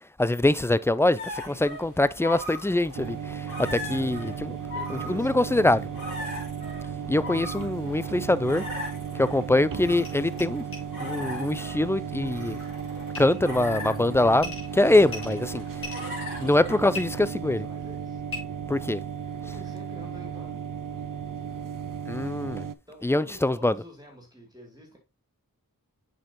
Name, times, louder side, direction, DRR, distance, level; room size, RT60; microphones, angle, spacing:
voice 1, 0.2-4.6 4.9-5.8 7.1-8.7 9.1-10.7 11.0-12.6 13.2-15.9 16.4-17.6 18.7-19.0 22.1-22.7 23.0-23.8, left 2 dB, 10° left, 0.3 m, -24 dB
sound 1, 1.2-17.2, left 1 dB, 55° left, 4.1 m, -40 dB
sound 2, 2.9-22.7, right 7 dB, 65° right, 0.5 m, -35 dB
voice 2, 4.7-6.0 16.4-18.2 19.4-20.6 22.9-25.0, equal, 10° right, 2.5 m, -48 dB
sound 3, 9.7-9.8 10.0-10.1 10.4-10.5 10.7-10.8 13.1-13.4 14.4-14.7 15.1-16.1 16.9-17.0 18.3-18.4, left 3 dB, 70° left, 3.3 m, -37 dB
7.5 x 5.3 x 2.8 m
wide cardioid pair, 40°, 36 cm